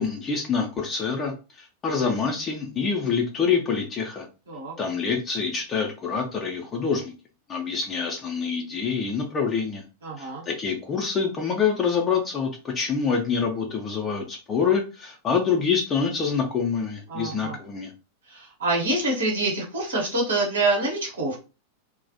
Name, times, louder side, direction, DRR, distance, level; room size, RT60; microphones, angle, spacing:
voice 1, 0.0-4.3 4.8-7.1 7.5-9.8 10.2-17.9, left 6 dB, 25° left, 1 dB, 0.5 m, -26 dB
voice 2, 10.0-10.4 17.1-17.6 18.3-21.4, right 2 dB, 65° right, -2 dB, 1.0 m, -26 dB
2.3 x 2.1 x 2.6 m, 0.31 s
figure-of-eight pair, 90°, 0 cm